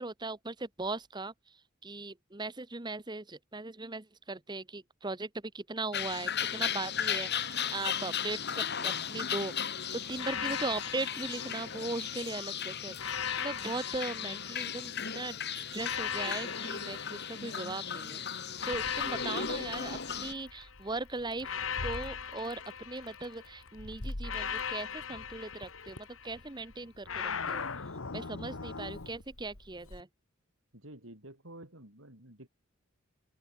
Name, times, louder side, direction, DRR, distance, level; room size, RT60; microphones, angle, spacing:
voice 1, 0.0-9.5 9.9-27.7 28.1-30.1, right 2 dB, 20° right, 1.2 m, -39 dB
sound 1, 5.9-20.3, left 8 dB, 50° left, 4.3 m, -36 dB
sound 2, 10.2-12.3 13.0-15.1 15.8-18.0 18.6-20.7 21.4-23.6 24.2-26.4 27.1-29.1, left 7 dB, 70° left, 1.4 m, -39 dB
Meow, 18.7-30.0, left 1 dB, 85° left, 3.3 m, -48 dB
voice 2, 30.7-32.5, right 1 dB, 70° right, 7.9 m, -50 dB
head